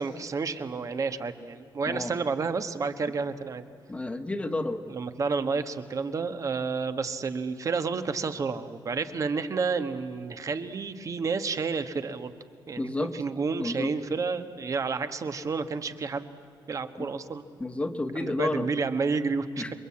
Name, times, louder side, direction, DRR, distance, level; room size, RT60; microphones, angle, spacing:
voice 1, 0.0-3.6 4.9-12.3 12.7-16.3 16.7-17.4 18.1-19.6, right 4 dB, 40° right, 9 dB, 1.2 m, -30 dB
voice 2, 3.9-4.8 12.8-13.1 13.6-13.9 17.0-17.1 17.6-18.7 19.6-19.7, left 2 dB, 15° left, 7 dB, 1.3 m, -30 dB
28.0 x 23.0 x 8.6 m, 2.5 s
wide cardioid pair, 155°, 8 cm